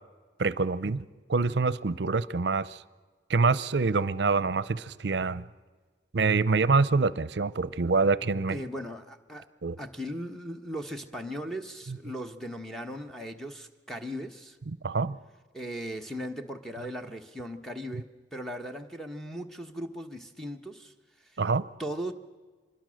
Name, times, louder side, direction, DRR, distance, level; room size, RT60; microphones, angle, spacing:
voice 1, 0.4-2.8 3.3-5.4 6.1-8.6 9.6-9.8 11.9-12.0 14.7-15.2 21.4-21.7, right 4 dB, 65° right, 0.6 m, -26 dB
voice 2, 8.5-9.4 9.8-14.6 15.5-20.9 21.2-21.3 21.8-22.1, equal, ahead, 1.1 m, -38 dB
25.0 x 21.0 x 6.4 m
head